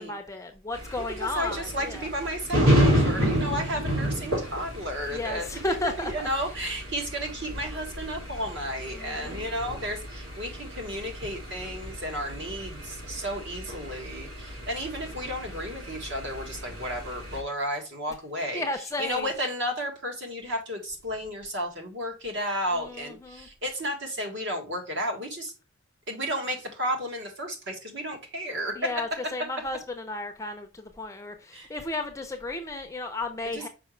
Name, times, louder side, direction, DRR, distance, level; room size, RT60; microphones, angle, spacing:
voice 1, 0.0-2.1 2.9-3.2 5.0-6.3 8.9-9.5 18.5-19.3 22.7-23.5 28.8-33.7, left 2 dB, 15° left, 0.6 m, -34 dB
sound 1, 0.7-17.4, equal, 85° right, 2.7 m, -31 dB
voice 2, 1.0-18.7 19.0-25.5 26.1-28.8 31.5-31.7, equal, 55° right, 1.7 m, -33 dB
6.0 x 5.0 x 3.2 m
head